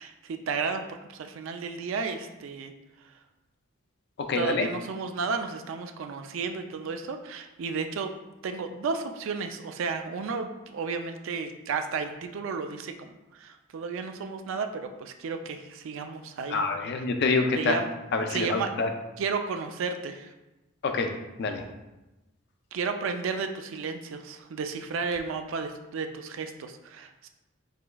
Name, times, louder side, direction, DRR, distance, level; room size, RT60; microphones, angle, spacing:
voice 1, 0.0-2.7 4.3-8.1 8.4-16.6 17.6-17.9 18.3-18.7 19.2-20.3 22.7-27.3, right 5 dB, 60° right, 6 dB, 0.3 m, -33 dB
voice 2, 4.2-4.7 16.5-17.8 18.1-18.9 20.8-21.1 21.4-21.6, left 4 dB, 50° left, 5 dB, 0.4 m, -26 dB
4.9 x 3.4 x 2.2 m, 1.0 s
head